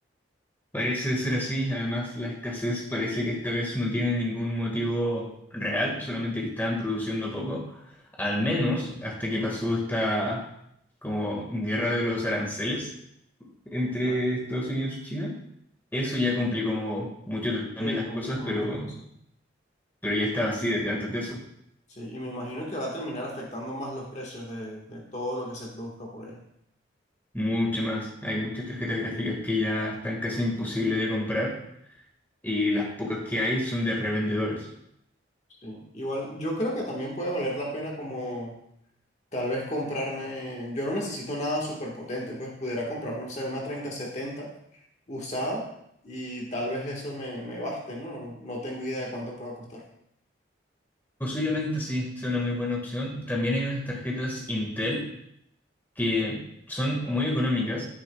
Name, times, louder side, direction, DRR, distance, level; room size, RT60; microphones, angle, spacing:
voice 1, 0.7-7.8 8.2-10.4 11.0-12.9 13.7-15.3 15.9-18.9 20.0-21.4 27.3-31.6 32.4-34.7 51.2-55.0 56.0-56.4 56.7-57.8, left 1 dB, 10° left, -2 dB, 1.7 m, -28 dB
voice 2, 17.8-18.9 21.9-26.4 35.6-38.6 39.3-44.8 45.1-45.6 46.0-49.8, equal, 35° left, -2 dB, 1.5 m, -33 dB
11.0 x 10.0 x 2.3 m, 0.74 s
head